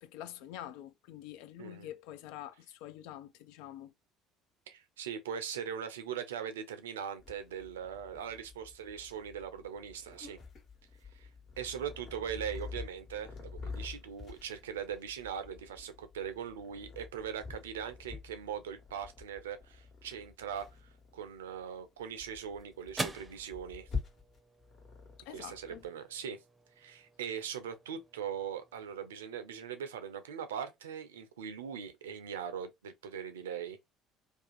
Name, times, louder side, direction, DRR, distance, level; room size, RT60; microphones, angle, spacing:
voice 1, 0.0-3.9 25.2-25.8, left 12 dB, 65° left, 0.3 m, -46 dB
voice 2, 1.6-1.9 4.7-10.4 11.1-11.3 11.6-20.7 21.1-23.9 25.3-26.4 26.8-33.9, right 8 dB, 80° right, 0.5 m, -40 dB
Purr, 7.2-25.9, left 4 dB, 45° left, 1.2 m, -47 dB
sound 1, 21.7-30.2, right 2 dB, 20° right, 0.6 m, -47 dB
2.6 x 2.4 x 2.3 m
figure-of-eight pair, 60°, 0 cm